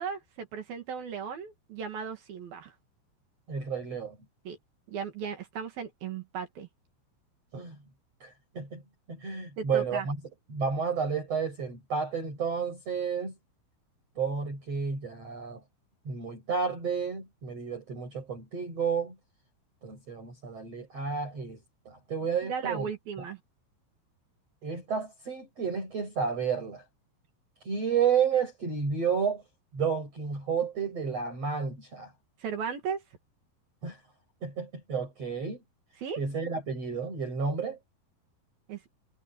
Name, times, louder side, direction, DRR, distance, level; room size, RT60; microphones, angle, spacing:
voice 1, 0.0-2.7 4.5-4.6 4.9-6.7 9.6-10.1 22.4-23.4 32.4-33.0 36.0-36.2 38.7-38.8, right 6 dB, 55° right, 3.6 m, -36 dB
voice 2, 3.5-4.2 7.5-7.7 8.2-8.8 9.1-10.2 10.5-13.3 14.2-15.6 16.0-19.2 19.8-21.6 21.8-22.9 24.6-26.8 27.6-29.4 29.7-32.1 33.8-34.0 34.4-35.6 36.2-37.8, right 6 dB, 30° right, 8.5 m, -31 dB
omnidirectional pair, 5.8 m